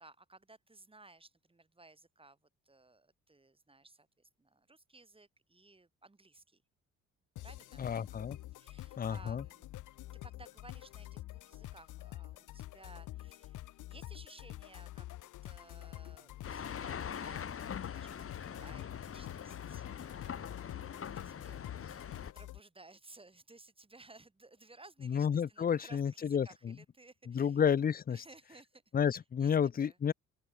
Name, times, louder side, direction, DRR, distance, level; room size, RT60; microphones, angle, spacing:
voice 1, 0.0-2.4 2.7-6.6 7.4-7.9 8.5-9.7 10.2-21.7 21.9-27.6 28.1-30.0, right 2 dB, 20° right, 5.2 m, -59 dB
sound 1, 7.4-22.6, left 15 dB, 80° left, 1.2 m, -47 dB
voice 2, 7.8-8.4 9.0-9.4 25.1-26.7 27.3-28.2 28.9-30.1, left 7 dB, 30° left, 0.6 m, -31 dB
sound 2, 16.4-22.3, left 7 dB, 50° left, 2.6 m, -43 dB
open air
cardioid pair, 90°, 30 cm